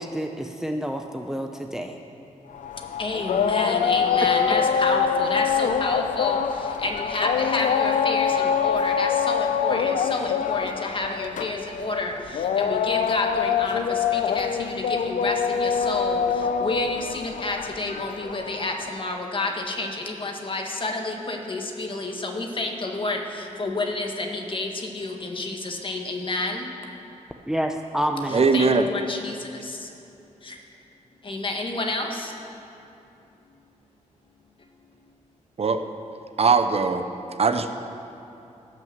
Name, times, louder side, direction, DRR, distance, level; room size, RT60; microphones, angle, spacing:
voice 1, 0.0-2.0 27.5-28.8, equal, 5° right, 4 dB, 0.7 m, -29 dB
sound 1, 2.5-18.9, left 7 dB, 85° left, 0.5 m, -25 dB
voice 2, 3.0-26.7 28.3-29.9 30.4-30.6 31.2-32.3, left 2 dB, 40° left, 2 dB, 1.6 m, -30 dB
voice 3, 28.3-28.9 35.6-35.8 36.4-37.0 37.4-37.7, right 4 dB, 50° right, 8 dB, 0.7 m, -20 dB
17.5 x 6.1 x 7.4 m, 2.8 s
cardioid pair, 80°, 13 cm